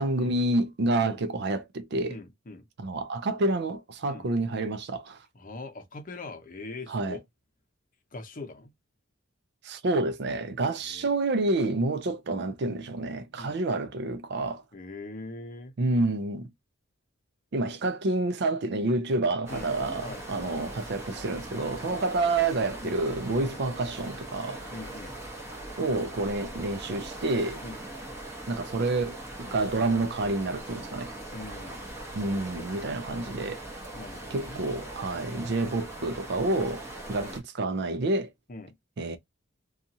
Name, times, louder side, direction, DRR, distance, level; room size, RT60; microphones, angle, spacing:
voice 1, 0.0-2.2 2.8-5.2 6.9-7.2 9.6-14.6 15.8-16.5 17.5-24.7 25.8-27.6 28.5-31.1 32.1-33.6 34.3-37.3 37.6-38.3 39.0-39.2, right 2 dB, 60° right, 0.5 m, -28 dB
voice 2, 2.1-2.7 4.1-4.2 5.3-7.2 8.1-8.7 10.8-11.1 13.4-13.6 14.7-15.7 19.5-19.7 20.0-20.6 21.9-22.0 22.8-23.0 23.4-23.6 24.7-25.2 27.6-27.8 31.3-31.8 33.9-34.7 35.7-35.9 37.2-37.4 38.5-38.8, left 2 dB, 45° left, 0.7 m, -42 dB
sound 1, 19.5-37.4, right 1 dB, 15° right, 0.9 m, -41 dB
2.7 x 2.4 x 2.7 m
head